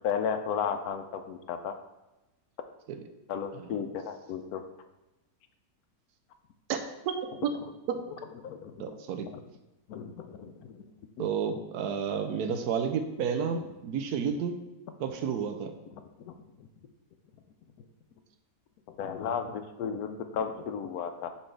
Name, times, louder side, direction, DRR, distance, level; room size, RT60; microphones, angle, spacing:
voice 1, 0.0-1.7 3.3-4.6 8.4-8.7 9.3-9.4 9.9-10.8 11.2-11.3 13.5-13.6 16.3-16.4 16.6-16.7 19.0-21.3, left 7 dB, 75° left, 8 dB, 1.0 m, -34 dB
voice 2, 7.1-7.5 7.9-8.0 8.8-9.3 11.2-14.6 15.0-15.7, right 7 dB, 80° right, 7 dB, 1.1 m, -31 dB
5.7 x 5.3 x 3.3 m, 1.0 s
omnidirectional pair, 1.7 m